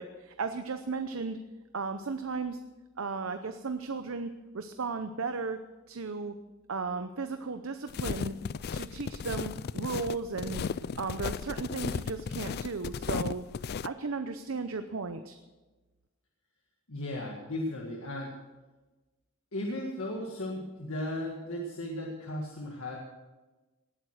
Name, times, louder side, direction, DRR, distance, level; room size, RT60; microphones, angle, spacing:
voice 1, 0.0-1.4 1.7-2.6 3.0-5.6 5.9-6.3 6.7-8.3 8.7-10.6 11.0-13.4 13.8-15.4, right 4 dB, 70° right, 9 dB, 0.7 m, -35 dB
sound 1, 7.9-13.9, left 6 dB, 50° left, 0.4 m, -35 dB
voice 2, 16.9-18.4 19.5-23.0, left 1 dB, 70° left, 0 dB, 1.9 m, -36 dB
19.0 x 8.9 x 6.5 m, 1.2 s
head